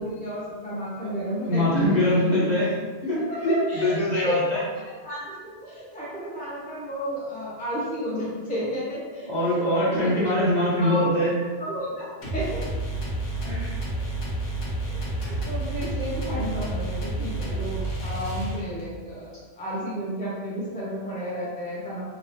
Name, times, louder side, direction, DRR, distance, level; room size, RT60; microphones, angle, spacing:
voice 1, 0.0-2.4 3.3-4.3 4.9-10.3 10.8-11.0 11.4-12.6 13.9-14.0 14.8-22.0, equal, 10° left, -8 dB, 0.3 m, -32 dB
voice 2, 1.4-2.7 3.0-4.4 9.2-11.3 13.4-13.8 15.2-15.3, left 1 dB, 40° left, -9 dB, 0.9 m, -23 dB
sound 1, 12.2-18.9, right 1 dB, 80° left, 1.1 m, -30 dB
2.9 x 2.1 x 2.7 m, 1.4 s
omnidirectional pair, 1.3 m